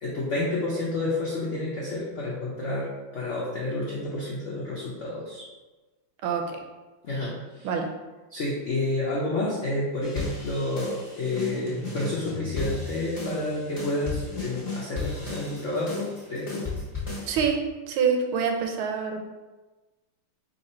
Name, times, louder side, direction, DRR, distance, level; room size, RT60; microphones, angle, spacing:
voice 1, 0.0-5.4 7.0-7.7 8.3-16.6, left 2 dB, 85° left, -5 dB, 0.6 m, -30 dB
voice 2, 6.2-6.6 7.6-7.9 17.3-17.6 17.9-19.2, right 6 dB, 90° right, 3 dB, 1.5 m, -26 dB
sound 1, 10.0-17.4, left 3 dB, 30° left, 0.6 m, -35 dB
3.8 x 2.8 x 4.2 m, 1.2 s
omnidirectional pair, 2.3 m